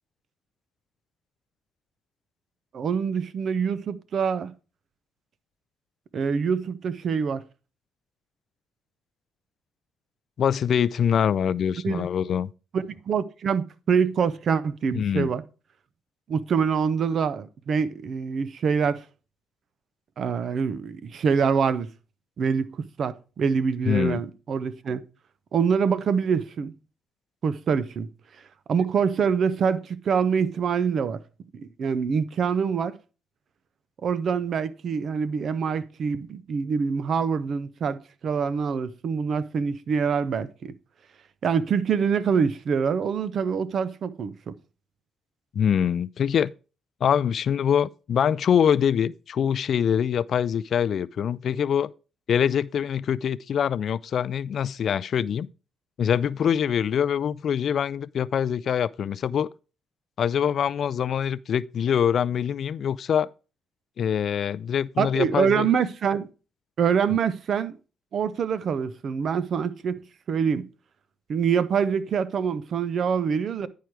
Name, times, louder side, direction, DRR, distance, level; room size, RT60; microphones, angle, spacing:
voice 1, 2.7-4.5 6.1-7.4 11.8-12.1 12.7-15.4 16.3-19.0 20.2-21.9 22.4-22.7 23.0-25.0 25.5-26.7 27.4-28.1 28.7-31.2 31.5-32.9 34.0-40.7 41.4-44.5 65.0-66.3 66.8-67.8 68.1-70.7 71.3-73.7, right 6 dB, 55° right, 0.6 m, -25 dB
voice 2, 10.4-12.5 14.9-15.3 23.9-24.2 45.5-46.5 47.0-51.9 52.3-55.5 56.0-59.5 60.2-63.3 64.0-65.7, left 8 dB, 60° left, 0.3 m, -24 dB
10.5 x 4.7 x 4.6 m
cardioid pair, 90°, 0 cm